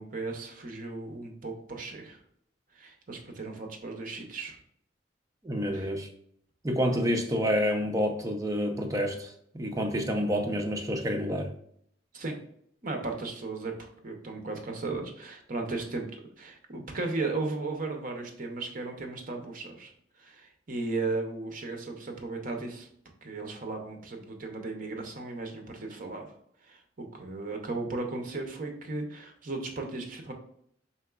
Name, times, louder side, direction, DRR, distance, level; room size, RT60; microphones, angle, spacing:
voice 1, 0.0-2.2 2.7-4.6 5.7-5.9 12.1-12.4 12.8-13.7 14.0-19.9 20.2-22.9 23.2-26.3 26.6-30.3, right 3 dB, 45° right, 0.7 m, -36 dB
voice 2, 5.4-6.1 6.6-11.5, equal, 20° right, 0.5 m, -28 dB
4.4 x 3.7 x 2.3 m
head